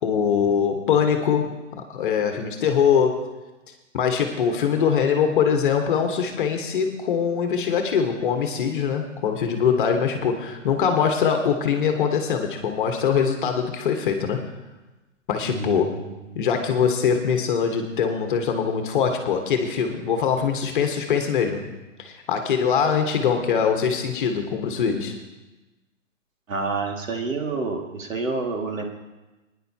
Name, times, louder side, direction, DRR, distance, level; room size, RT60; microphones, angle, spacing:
voice 1, 0.0-3.2 3.9-14.4 15.3-15.9 16.3-21.6 22.0-25.1, left 7 dB, 40° left, 4 dB, 1.2 m, -22 dB
voice 2, 15.5-16.1 26.5-28.8, right 4 dB, 80° right, 1 dB, 2.1 m, -28 dB
22.5 x 10.0 x 2.8 m, 1.1 s
hypercardioid pair, 160°, 39 cm